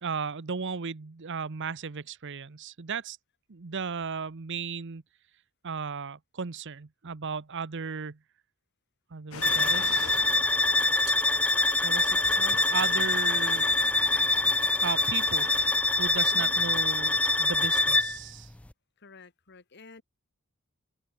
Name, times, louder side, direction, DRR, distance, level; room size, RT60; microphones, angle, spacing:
voice 1, 0.0-3.2 3.5-5.0 5.6-8.2 9.1-10.2 11.8-13.7 14.8-15.5 16.0-18.5, right 5 dB, 55° right, 0.8 m, -35 dB
sound 1, 9.3-15.7, left 6 dB, 70° left, 0.8 m, -45 dB
sound 2, 9.4-18.2, left 2 dB, 5° left, 0.3 m, -25 dB
voice 2, 16.3-16.6 19.0-20.0, left 3 dB, 50° left, 1.7 m, -51 dB
open air
head